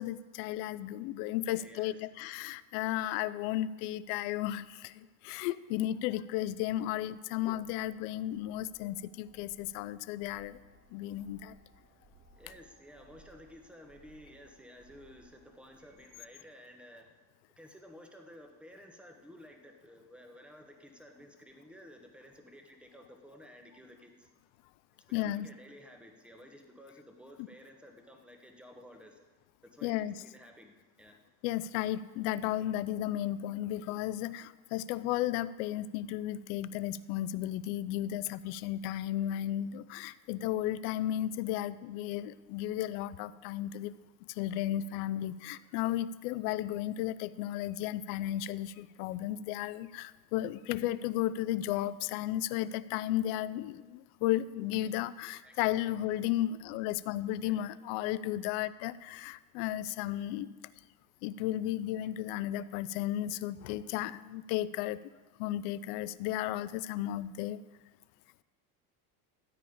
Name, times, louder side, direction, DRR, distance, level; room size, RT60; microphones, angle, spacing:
voice 1, 0.0-10.6 10.9-11.6 25.1-25.5 29.8-30.2 31.4-43.9 44.3-60.6 61.2-65.0 65.4-67.6, left 13 dB, 75° left, 16 dB, 0.6 m, -34 dB
voice 2, 1.5-2.0 12.3-17.2 17.6-24.3 25.0-29.2 29.6-31.2 55.4-55.9 57.4-57.7, equal, ahead, 3 dB, 1.3 m, -54 dB
sound 1, 5.8-16.4, right 2 dB, 30° right, 3.1 m, -64 dB
13.5 x 4.9 x 8.7 m, 1.3 s
supercardioid pair, 130°, 45 cm